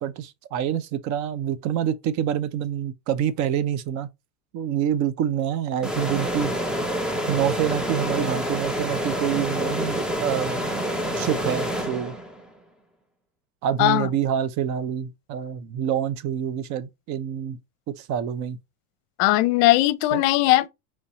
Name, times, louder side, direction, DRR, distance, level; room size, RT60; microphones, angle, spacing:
voice 1, 0.0-4.1 4.5-6.5 7.3-10.6 11.1-12.2 13.6-17.6 17.9-18.6 20.1-20.2, right 9 dB, 40° right, 0.6 m, -26 dB
sound 1, 5.8-12.5, equal, ahead, 0.3 m, -27 dB
voice 2, 19.2-20.7, left 17 dB, 65° left, 0.6 m, -19 dB
5.4 x 3.1 x 2.9 m
supercardioid pair, 130°, 44 cm